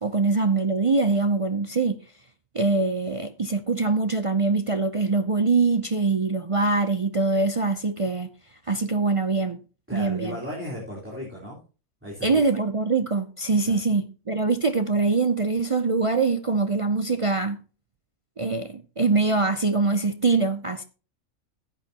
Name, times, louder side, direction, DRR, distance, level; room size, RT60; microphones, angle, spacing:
voice 1, 0.0-2.0 2.5-8.3 8.7-9.6 9.9-10.4 12.2-17.6 18.4-20.8, right 3 dB, 45° right, 0.4 m, -23 dB
voice 2, 9.9-11.6 12.0-12.4 13.7-13.8, equal, 10° right, 3.8 m, -35 dB
14.5 x 9.1 x 2.8 m
omnidirectional pair, 1.4 m